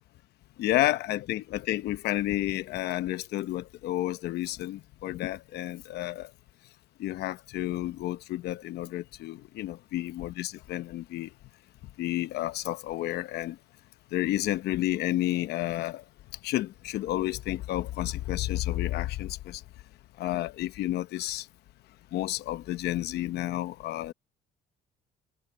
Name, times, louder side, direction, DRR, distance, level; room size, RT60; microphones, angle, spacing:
voice 1, 0.6-6.3 7.0-11.3 12.0-13.6 14.1-16.0 16.4-19.6 20.2-21.5 22.1-24.1, left 15 dB, 75° left, 0.9 m, -31 dB
cardioid pair, 110°, 17 cm